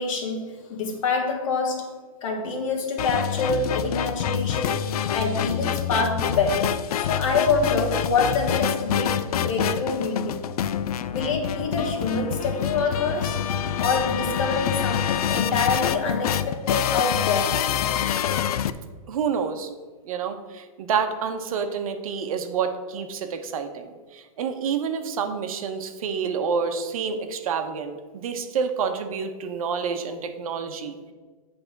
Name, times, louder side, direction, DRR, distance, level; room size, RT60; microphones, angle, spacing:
voice 1, 0.0-10.4 11.1-13.4 13.8-17.7, left 4 dB, 60° left, 3 dB, 1.4 m, -26 dB
sound 1, 3.0-18.7, left 9 dB, 80° left, 0.4 m, -26 dB
voice 2, 19.1-19.7 20.0-31.1, right 6 dB, 70° right, 7 dB, 0.9 m, -28 dB
7.9 x 3.5 x 5.8 m, 1.4 s
hypercardioid pair, 150°, 19 cm